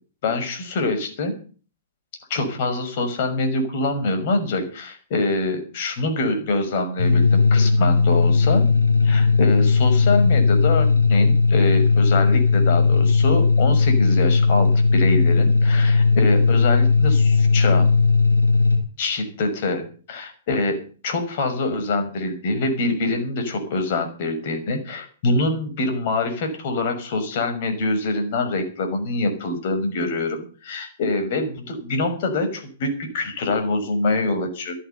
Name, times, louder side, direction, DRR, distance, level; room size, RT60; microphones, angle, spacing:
voice 1, 0.2-1.3 2.3-8.6 9.0-17.9 19.0-34.7, left 2 dB, 50° left, 7 dB, 6.0 m, -25 dB
sound 1, 7.0-18.8, left 4 dB, 85° left, 4.5 m, -17 dB
14.5 x 11.0 x 7.1 m, 0.39 s
figure-of-eight pair, 110°, 0 cm